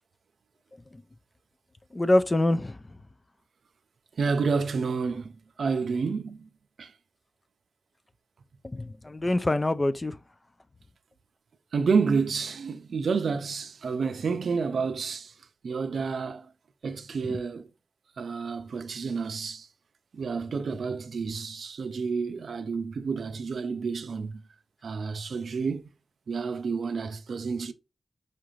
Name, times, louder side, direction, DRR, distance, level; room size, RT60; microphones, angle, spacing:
voice 1, 1.9-2.8 8.6-10.2 17.3-17.4, left 1 dB, 30° left, 0.3 m, -25 dB
voice 2, 4.2-6.5 6.8-6.9 11.7-15.3 15.6-16.5 16.8-17.7 18.2-19.7 20.1-24.4 24.8-25.8 26.3-27.7, right 5 dB, 85° right, 0.4 m, -29 dB
5.6 x 2.5 x 3.0 m
wide cardioid pair, 80°, 0 cm